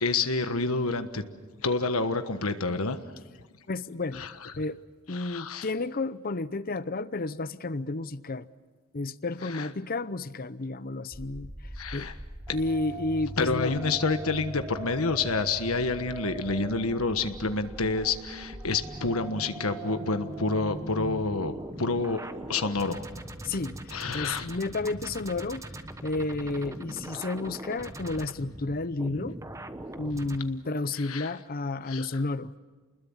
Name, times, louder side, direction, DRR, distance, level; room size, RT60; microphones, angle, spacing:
voice 1, 0.0-1.2 1.6-3.0 4.1-4.5 5.1-5.7 9.4-9.7 11.8-12.1 13.4-22.2 22.5-23.0 23.9-24.5 31.0-31.3 31.9-32.1, left 3 dB, 80° left, 9 dB, 1.4 m, -28 dB
voice 2, 3.7-4.2 4.6-4.8 5.1-8.5 8.9-11.5 11.9-12.1 12.5-13.7 23.4-25.6 26.0-29.4 30.0-32.5, left 2 dB, 40° left, 15 dB, 0.8 m, -31 dB
sound 1, 11.1-30.4, right 1 dB, 15° right, 1.2 m, -40 dB
29.0 x 21.0 x 7.3 m, 1.4 s
head